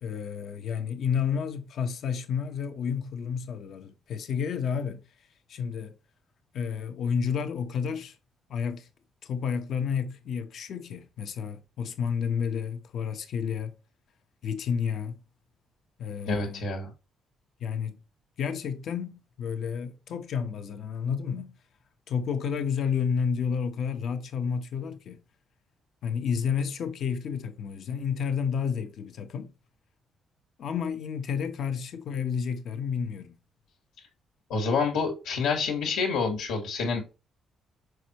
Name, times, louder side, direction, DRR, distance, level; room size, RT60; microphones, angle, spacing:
voice 1, 0.0-5.0 5.5-5.9 6.5-8.1 8.5-8.9 9.2-13.8 14.4-15.2 16.0-16.7 17.6-18.0 18.4-21.5 22.1-25.2 26.0-29.5 30.6-33.3, left 6 dB, 65° left, 1.2 m, -31 dB
voice 2, 16.3-16.9 34.5-37.0, left 4 dB, 90° left, 2.1 m, -27 dB
6.4 x 5.2 x 3.1 m
cardioid pair, 90°, 0 cm